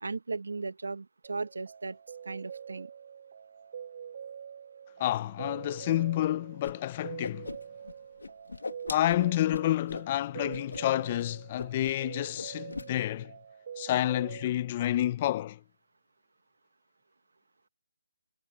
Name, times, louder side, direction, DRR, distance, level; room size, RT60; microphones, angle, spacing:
voice 1, 0.0-2.0 2.2-2.9, right 3 dB, 80° right, 1.0 m, -36 dB
sound 1, 1.2-14.5, right 8 dB, 30° right, 3.7 m, -45 dB
voice 2, 5.0-7.5 8.9-13.3 13.8-15.6, left 13 dB, 15° left, 0.3 m, -29 dB
Whoosh swoosh swish, 6.6-6.7 7.0-7.9 8.2-10.1 10.5-10.8 11.1-11.2 11.6-12.1 12.3-12.9, left 3 dB, 80° left, 1.4 m, -40 dB
hypercardioid pair, 180°, 0 cm